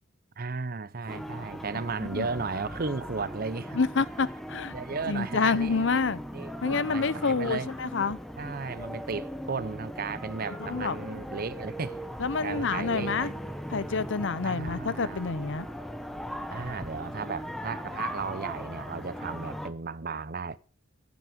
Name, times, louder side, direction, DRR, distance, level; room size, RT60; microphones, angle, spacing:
voice 1, 0.4-3.8 4.7-6.0 6.3-7.7 8.4-12.0 12.4-13.3 14.4-15.4 16.5-20.6, right 4 dB, 50° right, 0.7 m, -35 dB
sound 1, 1.1-19.7, equal, ahead, 1.0 m, -39 dB
voice 2, 3.7-4.8 5.1-6.2 6.6-8.2 10.6-11.0 12.2-13.3 13.7-15.7, left 4 dB, 70° left, 0.7 m, -28 dB
12.5 x 9.4 x 5.1 m
head